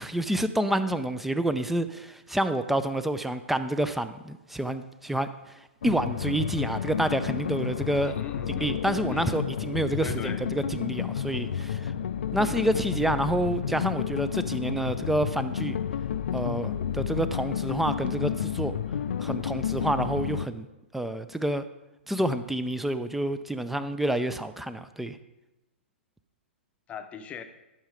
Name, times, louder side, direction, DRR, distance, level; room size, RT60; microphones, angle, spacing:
voice 1, 0.0-5.3 5.8-8.1 8.5-11.9 12.3-15.8 16.3-18.7 19.2-20.7 20.9-21.6 22.1-25.2, right 1 dB, 5° right, 12 dB, 0.4 m, -28 dB
sound 1, 5.8-20.5, left 8 dB, 65° left, 0.5 m, -31 dB
voice 2, 8.0-8.8 9.1-9.4 10.0-10.4 12.3-12.8 26.9-27.4, left 7 dB, 20° left, 8 dB, 0.7 m, -40 dB
sound 2, 8.8-9.0 10.1-10.3 11.6-11.8 13.1-13.3 14.8-14.9 16.3-16.5 18.0-18.2 19.3-19.5 20.4-20.5, right 8 dB, 55° right, 0.7 m, -49 dB
11.5 x 5.5 x 5.0 m, 0.99 s
figure-of-eight pair, 120°, 6 cm